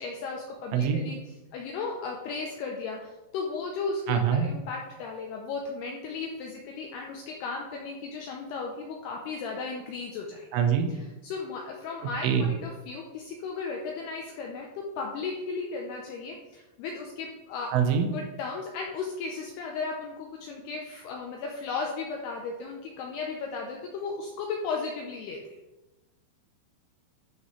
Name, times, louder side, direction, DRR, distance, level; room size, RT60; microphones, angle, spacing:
voice 1, 0.0-10.5 10.9-17.7 18.1-25.4, left 4 dB, 90° left, 1 dB, 2.3 m, -35 dB
voice 2, 4.1-4.5 10.5-10.9 12.2-12.5 17.7-18.1, right 8 dB, 85° right, 5 dB, 3.4 m, -24 dB
12.0 x 5.6 x 3.2 m, 1.1 s
omnidirectional pair, 5.5 m